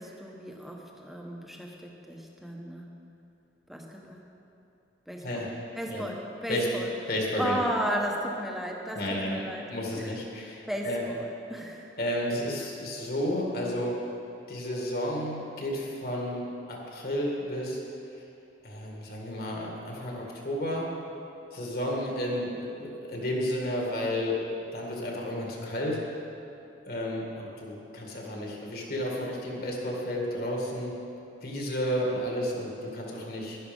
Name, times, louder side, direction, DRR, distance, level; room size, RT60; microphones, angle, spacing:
voice 1, 0.0-2.9 3.7-4.2 5.1-5.5 5.7-6.9 7.4-9.7 10.0-10.2 10.7-12.0, equal, ahead, 0 dB, 1.1 m, -34 dB
voice 2, 7.1-7.6 9.0-9.4 9.7-11.0 12.0-14.0 14.5-16.4 16.7-17.8 18.6-20.9 21.5-24.4 24.7-26.0 26.9-30.9 31.4-33.6, equal, 55° left, -1 dB, 2.1 m, -32 dB
11.5 x 11.0 x 5.4 m, 2.8 s
head